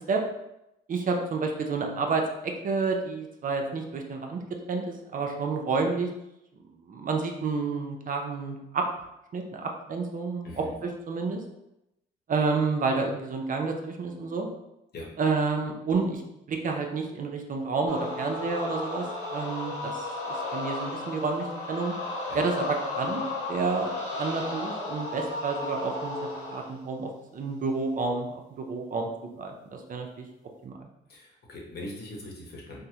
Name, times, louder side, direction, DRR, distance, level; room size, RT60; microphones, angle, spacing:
voice 1, 0.9-4.4 4.7-6.1 6.8-8.8 9.3-11.4 12.3-14.5 15.2-16.2 16.5-19.1 19.3-21.9 22.3-23.9 24.2-29.1 29.4-30.3 30.6-30.9, right 4 dB, 45° right, 2 dB, 0.5 m, -30 dB
sound 1, 17.9-26.7, left 2 dB, 90° left, 1.1 m, -34 dB
voice 2, 31.1-32.8, left 1 dB, 55° left, -2 dB, 0.9 m, -41 dB
3.5 x 2.0 x 2.8 m, 0.89 s
cardioid pair, 90°, 20 cm